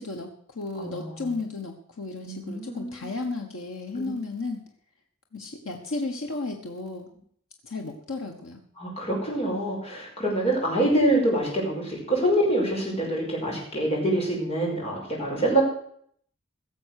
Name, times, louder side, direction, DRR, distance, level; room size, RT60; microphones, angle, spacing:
voice 1, 0.0-4.6 5.3-7.1 7.6-8.6, left 3 dB, 90° left, 2 dB, 1.3 m, -34 dB
voice 2, 0.8-1.3 2.2-3.1 4.0-4.1 8.8-15.6, right 1 dB, 30° left, -3 dB, 5.6 m, -26 dB
16.5 x 7.0 x 6.5 m, 0.62 s
head